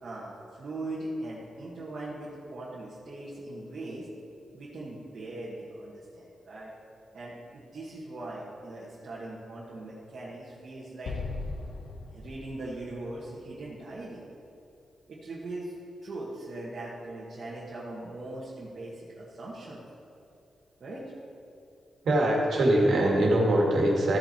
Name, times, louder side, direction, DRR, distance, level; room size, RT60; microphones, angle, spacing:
voice 1, 0.0-4.1 4.5-6.7 7.1-11.2 12.1-14.2 15.1-19.8 20.8-21.0, right 2 dB, 50° right, -8 dB, 1.5 m, -40 dB
Explosion, 11.0-14.3, left 3 dB, 65° left, 0.7 m, -39 dB
voice 2, 22.0-24.2, right 1 dB, 65° right, -1 dB, 2.1 m, -23 dB
14.5 x 5.8 x 4.4 m, 2.7 s
wide cardioid pair, 145°, 0 cm